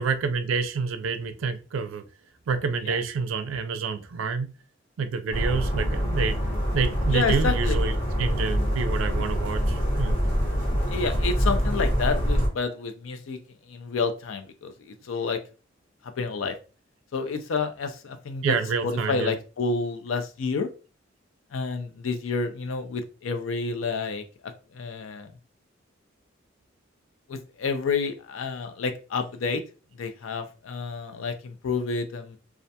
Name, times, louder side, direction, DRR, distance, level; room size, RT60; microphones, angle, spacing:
voice 1, 0.0-2.0 2.5-4.5 5.0-6.4 6.7-10.2 18.4-19.4, right 5 dB, 85° right, 9 dB, 0.4 m, -28 dB
sound 1, 5.3-12.5, equal, 45° left, 1.1 m, -25 dB
voice 2, 7.1-7.8 10.9-13.4 13.7-15.4 16.2-16.5 17.1-18.5 18.8-20.7 21.5-24.2 24.7-25.3 27.3-29.6 30.0-32.4, left 4 dB, 75° left, 7 dB, 0.4 m, -29 dB
2.4 x 2.2 x 2.7 m, 0.33 s
head